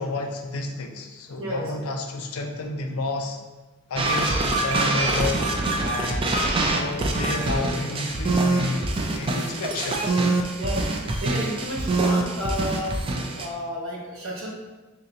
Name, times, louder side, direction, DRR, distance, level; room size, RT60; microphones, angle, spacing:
voice 1, 0.0-3.4 3.9-5.5 5.8-8.8 9.1-10.2, left 2 dB, 90° left, 4 dB, 0.5 m, -31 dB
voice 2, 1.4-1.7 10.6-10.8 11.2-12.9 13.3-14.5, equal, 70° right, -3 dB, 1.0 m, -31 dB
sound 1, 4.0-13.5, right 2 dB, 25° right, 0.3 m, -24 dB
3.3 x 2.9 x 3.8 m, 1.2 s
head